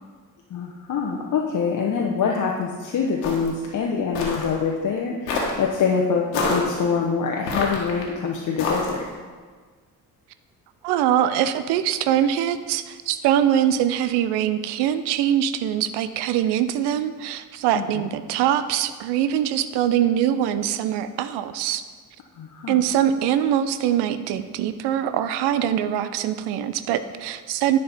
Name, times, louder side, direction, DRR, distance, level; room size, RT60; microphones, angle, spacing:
voice 1, 0.5-9.0 17.7-17.8 22.4-22.8, left 5 dB, 40° left, 0 dB, 1.0 m, -25 dB
sound 1, 3.2-3.6 4.1-4.5 5.3-5.6 6.3-6.7 7.5-8.0 8.6-9.1, left 3 dB, 75° left, 1.5 m, -26 dB
voice 2, 10.8-21.8 22.7-27.8, right 10 dB, 55° right, 12 dB, 0.6 m, -23 dB
10.5 x 5.4 x 4.2 m, 1.5 s
figure-of-eight pair, 45°, 49 cm